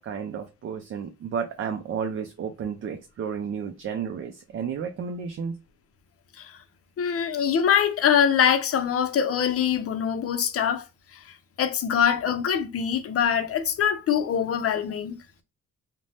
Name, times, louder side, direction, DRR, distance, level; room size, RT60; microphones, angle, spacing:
voice 1, 0.0-5.5, right 7 dB, 45° right, 0.5 m, -32 dB
voice 2, 7.0-10.8 11.1-11.2 11.6-15.2, left 8 dB, 50° left, 0.6 m, -23 dB
2.6 x 2.1 x 3.3 m
cardioid pair, 90°, 30 cm